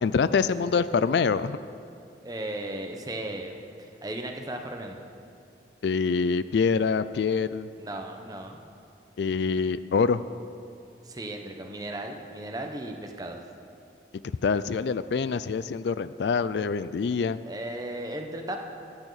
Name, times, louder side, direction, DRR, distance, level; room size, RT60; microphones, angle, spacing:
voice 1, 0.0-1.6 5.8-7.7 9.2-10.2 14.4-17.4, left 5 dB, 70° left, 14 dB, 0.4 m, -25 dB
voice 2, 0.6-0.9 2.2-5.0 7.8-8.6 11.0-13.4 17.5-18.6, right 1 dB, 20° right, 3 dB, 1.0 m, -36 dB
23.0 x 8.9 x 4.1 m, 2.5 s
head